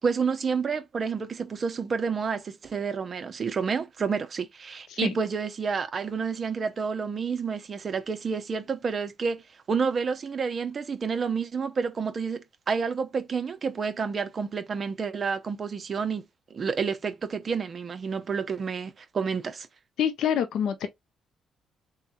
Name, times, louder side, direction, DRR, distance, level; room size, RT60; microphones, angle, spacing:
voice 1, 0.0-9.4 9.7-16.2 16.5-19.7, right 5 dB, 45° right, 0.8 m, -29 dB
voice 2, 20.0-20.9, left 9 dB, 75° left, 0.6 m, -26 dB
3.7 x 2.3 x 4.2 m
cardioid pair, 90°, 0 cm